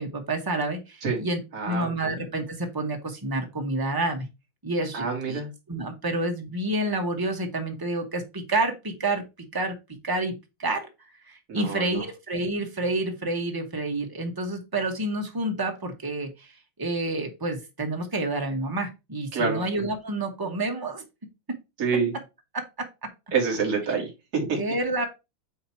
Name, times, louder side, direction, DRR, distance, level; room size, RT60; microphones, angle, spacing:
voice 1, 0.0-1.4 1.7-4.3 4.6-5.4 5.7-9.2 9.5-9.7 10.0-10.3 10.6-10.9 11.3-16.5 16.8-21.0 22.5-22.6 24.5-25.1, right 2 dB, 15° right, 0.7 m, -29 dB
voice 2, 1.5-1.9 4.9-5.5 11.5-12.0 19.3-19.6 21.8-22.1 23.3-24.6, right 5 dB, 45° right, 2.6 m, -27 dB
8.7 x 2.9 x 4.5 m
omnidirectional pair, 2.2 m